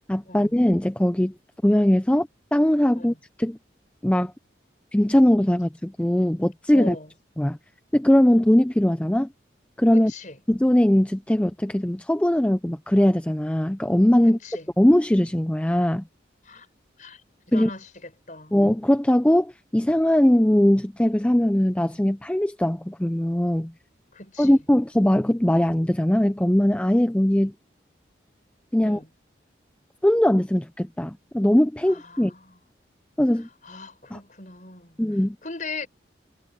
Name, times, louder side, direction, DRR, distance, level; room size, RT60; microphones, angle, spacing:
voice 1, 0.1-1.3 1.6-3.6 4.0-4.3 4.9-7.0 7.4-7.6 7.9-9.3 9.8-10.1 10.5-14.4 14.8-16.0 17.5-17.7 18.5-23.7 24.4-27.5 28.7-29.0 30.0-32.3 33.2-33.5 34.1-34.2 35.0-35.4, left 1 dB, 5° left, 0.4 m, -20 dB
voice 2, 6.7-7.1 9.9-10.4 14.2-14.7 16.4-16.7 17.0-17.2 17.5-18.5 24.1-24.6 28.8-29.1 31.9-32.6 33.6-35.0 35.4-35.9, left 3 dB, 40° left, 6.6 m, -39 dB
head